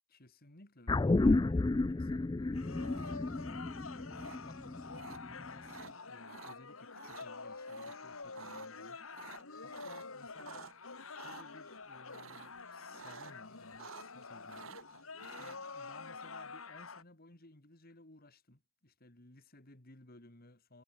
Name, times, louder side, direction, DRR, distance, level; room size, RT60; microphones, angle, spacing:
voice 1, 0.1-10.7 11.1-15.0 15.2-20.8, left 2 dB, 45° left, 3.0 m, -58 dB
sound 1, 0.9-5.5 5.8-5.9, left 2 dB, 20° left, 0.3 m, -31 dB
sound 2, 2.5-17.0, left 4 dB, 85° left, 3.0 m, -48 dB
sound 3, 2.8-3.4 4.2-4.4 4.9-5.2 5.6-5.9 6.3-6.6 6.9-7.3 7.7-8.0 8.2-8.7 9.1-10.7 11.2-11.4 12.1-12.6 12.9-13.4 13.6-14.2 14.5-15.6, right 6 dB, 70° right, 0.9 m, -51 dB
head